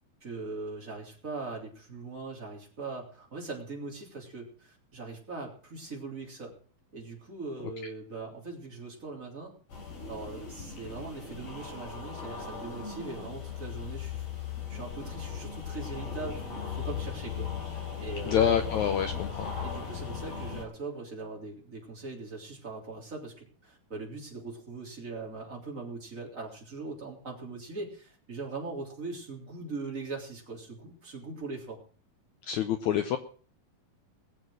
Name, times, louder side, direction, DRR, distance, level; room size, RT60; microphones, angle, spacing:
voice 1, 0.2-6.5 6.9-9.6 10.1-14.2 14.7-18.6 19.1-19.2 19.6-31.8, right 3 dB, 20° right, 0 dB, 3.5 m, -41 dB
sound 1, 9.7-20.6, left 7 dB, 40° left, 4.3 m, -37 dB
voice 2, 18.3-19.5 32.5-33.2, left 8 dB, 75° left, 8 dB, 1.7 m, -27 dB
20.5 x 7.4 x 6.3 m, 0.43 s
omnidirectional pair, 4.3 m